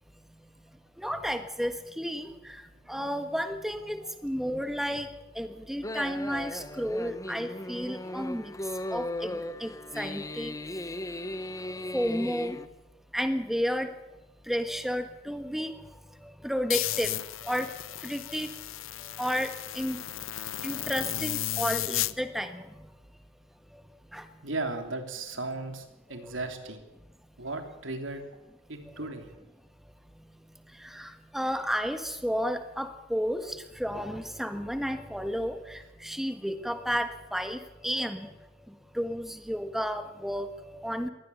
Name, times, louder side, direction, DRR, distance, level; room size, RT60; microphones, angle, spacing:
voice 1, 1.0-5.1 5.3-8.5 8.9-10.6 11.6-12.6 13.1-13.9 14.4-18.5 19.0-20.0 20.6-22.9 23.7-23.8 24.1-24.3 26.1-26.3 28.9-29.1 30.7-38.3 38.7-41.1, equal, ahead, 8 dB, 1.5 m, -32 dB
sound 1, 5.8-12.7, left 1 dB, 15° left, 0.9 m, -37 dB
sound 2, 16.7-22.1, left 13 dB, 85° left, 0.8 m, -34 dB
voice 2, 24.4-26.8 27.4-28.2 28.7-29.3, right 2 dB, 75° right, 6 dB, 3.2 m, -36 dB
22.0 x 17.0 x 7.1 m, 1.0 s
head